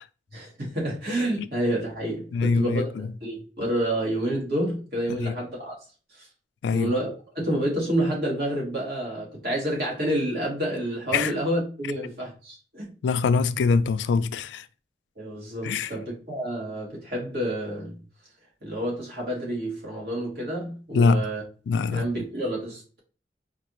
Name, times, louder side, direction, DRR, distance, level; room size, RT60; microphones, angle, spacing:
voice 1, 0.3-5.8 6.1-6.3 6.7-12.9 15.2-18.0 18.6-21.4 21.9-23.0, right 1 dB, 60° right, 1.8 m, -29 dB
voice 2, 2.3-3.1 5.2-5.4 6.6-6.9 11.1-11.3 13.0-14.7 15.6-16.0 20.9-21.3 21.7-22.1, left 4 dB, 85° left, 0.3 m, -23 dB
4.7 x 2.5 x 2.9 m
head